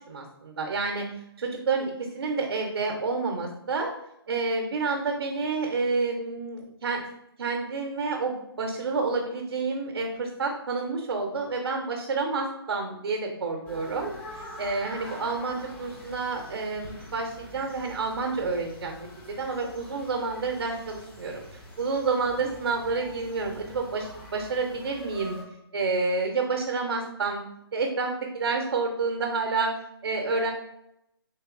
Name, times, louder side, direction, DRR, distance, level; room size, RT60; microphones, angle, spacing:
voice 1, 0.1-1.1 1.4-3.9 4.3-7.0 7.4-25.4 25.7-27.4 27.7-30.5, right 4 dB, 70° right, 2 dB, 0.6 m, -29 dB
sound 1, 13.7-25.4, left 1 dB, 10° left, 0.4 m, -45 dB
3.3 x 2.9 x 2.4 m, 0.81 s
figure-of-eight pair, 145°, 13 cm